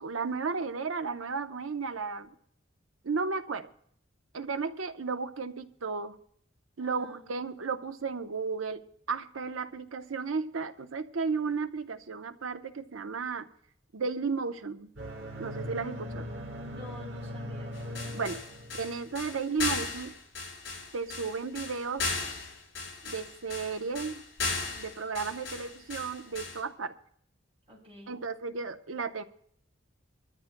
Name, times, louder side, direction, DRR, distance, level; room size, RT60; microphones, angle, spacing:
voice 1, 0.0-2.3 3.0-3.7 4.3-6.2 6.8-13.5 13.9-14.9 15.4-16.3 18.1-18.4 18.8-20.1 20.9-22.1 23.0-24.2 24.8-26.9 28.1-29.2, right 4 dB, 90° right, 9 dB, 0.8 m, -34 dB
voice 2, 6.8-7.2 16.6-17.7 25.4-25.8 27.7-28.2, equal, 30° right, -3 dB, 4.3 m, -49 dB
sound 1, 15.0-19.0, equal, 70° right, 3.6 m, -39 dB
sound 2, 17.7-26.6, left 4 dB, 60° left, 7.1 m, -36 dB
23.0 x 13.5 x 2.2 m, 0.64 s
head